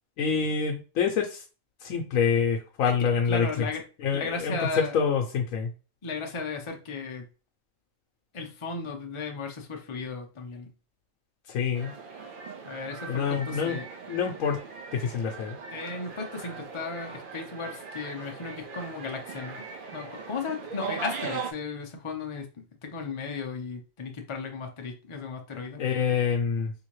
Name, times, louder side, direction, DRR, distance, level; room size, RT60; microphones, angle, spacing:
voice 1, 0.2-1.4 1.8-3.5 4.0-4.6 4.9-5.7 11.5-11.9 13.1-13.8 14.1-14.6 14.9-15.6 25.8-26.7, left 6 dB, 80° left, 0 dB, 1.0 m, -26 dB
voice 2, 2.8-3.8 4.1-4.9 6.0-7.2 8.3-10.7 12.6-13.9 15.7-19.6 19.9-25.8, left 4 dB, 45° left, 2 dB, 0.4 m, -35 dB
sound 1, 11.7-21.5, right 5 dB, 65° right, 0.5 m, -39 dB
3.6 x 2.7 x 3.0 m, 0.34 s
omnidirectional pair, 1.4 m